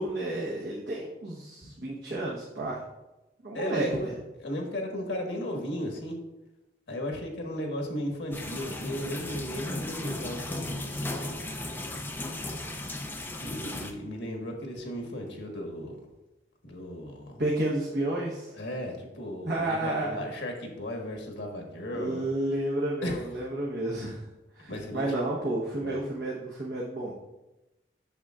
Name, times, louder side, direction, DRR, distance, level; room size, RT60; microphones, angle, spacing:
voice 1, 0.0-2.8 3.4-4.1 17.4-18.6 19.4-20.2 21.9-27.1, right 1 dB, 65° right, -5 dB, 1.1 m, -31 dB
voice 2, 3.5-4.1 4.4-6.2 6.9-10.7 13.4-16.0 16.6-17.4 18.5-22.2 23.0-23.3 24.7-25.0 25.8-26.0, left 1 dB, 90° left, 1 dB, 1.5 m, -35 dB
sound 1, 8.3-13.9, left 1 dB, 10° left, 0.5 m, -36 dB
8.0 x 6.7 x 2.4 m, 0.99 s
head